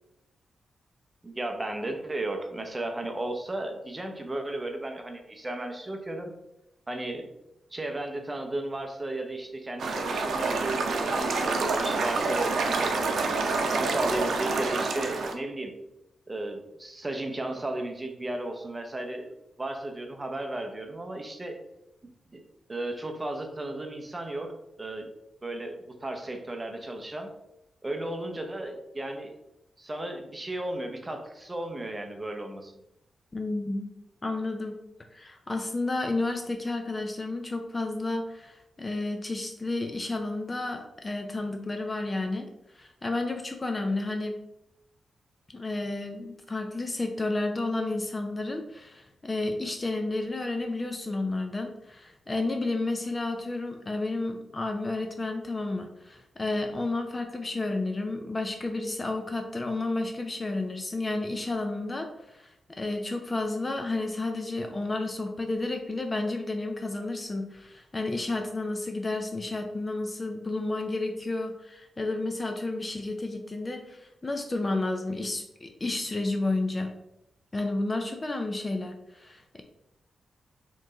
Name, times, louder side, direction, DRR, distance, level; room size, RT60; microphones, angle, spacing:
voice 1, 1.2-6.3 6.9-7.3 7.7-12.9 13.4-15.7 16.3-21.6 22.3-22.4 22.7-24.5 24.8-25.1 25.4-27.3 27.8-29.3 29.8-32.7, right 1 dB, 20° right, 4 dB, 0.7 m, -34 dB
sound 1, 9.8-15.3, right 3 dB, 75° right, 0.7 m, -27 dB
voice 2, 33.3-33.9 34.2-34.8 35.1-42.5 42.7-44.4 45.5-76.9 77.5-79.6, left 2 dB, 25° left, 5 dB, 0.4 m, -31 dB
4.3 x 3.1 x 3.8 m, 0.85 s
wide cardioid pair, 125°, 0 cm